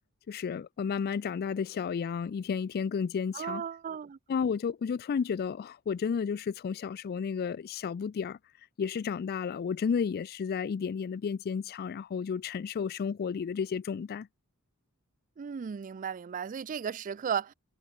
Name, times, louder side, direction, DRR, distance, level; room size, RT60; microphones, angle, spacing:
voice 1, 0.3-3.6 4.3-8.4 8.8-14.3, left 6 dB, 45° left, 0.3 m, -32 dB
voice 2, 3.3-4.2 15.4-17.5, right 7 dB, 40° right, 0.4 m, -35 dB
head